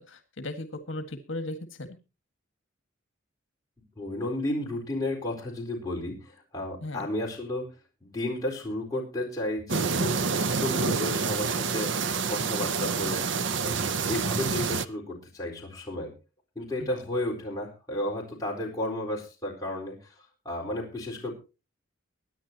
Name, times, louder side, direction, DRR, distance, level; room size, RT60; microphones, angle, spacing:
voice 1, 0.0-1.9 6.8-7.1 16.8-16.9, left 1 dB, 70° left, 8 dB, 1.8 m, -37 dB
voice 2, 4.0-7.7 8.0-12.0 12.3-13.3 13.6-16.1 16.6-21.4, left 1 dB, 20° left, -3 dB, 4.3 m, -33 dB
sound 1, 9.7-14.8, right 5 dB, 60° right, 0.7 m, -28 dB
23.5 x 10.0 x 2.9 m, 0.31 s
head